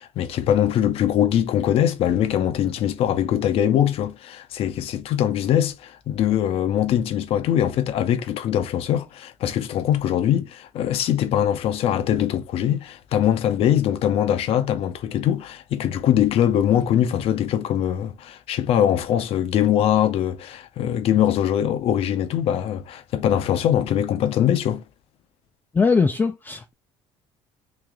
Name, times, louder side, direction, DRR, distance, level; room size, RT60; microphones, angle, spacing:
voice 1, 0.0-24.8, left 10 dB, 60° left, 0.6 m, -22 dB
voice 2, 25.7-26.7, left 4 dB, 15° left, 0.3 m, -20 dB
3.3 x 2.8 x 3.5 m
cardioid pair, 125°, 11 cm